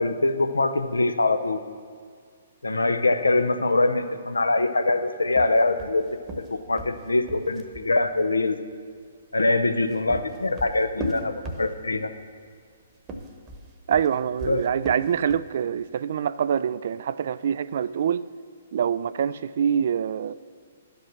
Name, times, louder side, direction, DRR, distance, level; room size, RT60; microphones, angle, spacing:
voice 1, 0.0-1.6 2.6-6.1 6.4-8.6 9.3-12.1 14.5-14.6, left 2 dB, 90° left, 9 dB, 0.6 m, -23 dB
sound 1, 5.3-7.9 9.6-12.1 12.9-15.6, right 1 dB, 25° right, 1.0 m, -37 dB
voice 2, 13.9-18.2 18.7-20.3, right 8 dB, 60° right, 17 dB, 0.3 m, -25 dB
11.5 x 5.3 x 5.8 m, 2.1 s
hypercardioid pair, 130°, 0 cm